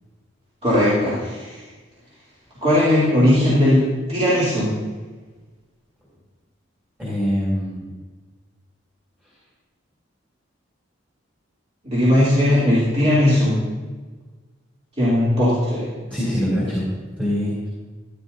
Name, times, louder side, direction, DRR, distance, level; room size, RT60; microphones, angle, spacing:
voice 1, 0.6-1.6 2.6-4.7 11.8-13.5 15.0-15.8, left 1 dB, 30° right, -11 dB, 3.1 m, -18 dB
voice 2, 7.0-7.9 16.1-17.7, equal, 10° right, -8 dB, 3.1 m, -24 dB
15.0 x 10.5 x 2.7 m, 1.3 s
head